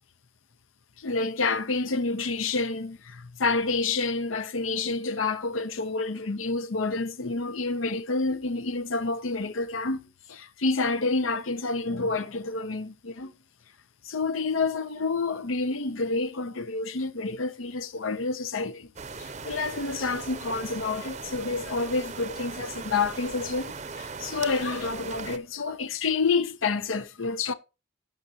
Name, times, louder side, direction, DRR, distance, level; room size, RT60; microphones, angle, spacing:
voice 1, 1.0-13.3 14.0-18.9 19.2-27.5, left 3 dB, 90° left, 0.8 m, -29 dB
sound 1, 19.0-25.4, right 4 dB, 35° right, 0.6 m, -38 dB
17.0 x 5.7 x 2.9 m
head